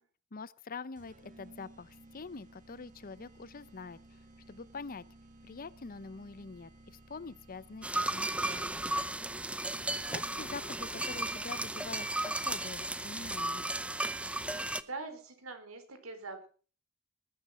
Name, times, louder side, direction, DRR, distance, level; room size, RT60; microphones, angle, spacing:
voice 1, 0.3-4.2 4.5-5.1 5.4-8.8 10.1-13.6, left 4 dB, 45° left, 18 dB, 0.7 m, -45 dB
sound 1, 1.0-12.3, right 1 dB, 40° right, 2.2 m, -57 dB
sound 2, 7.8-14.8, right 2 dB, 5° right, 0.6 m, -35 dB
voice 2, 9.5-9.9 14.8-16.5, right 3 dB, 85° right, 8 dB, 3.9 m, -44 dB
19.5 x 8.8 x 6.1 m, 0.40 s
head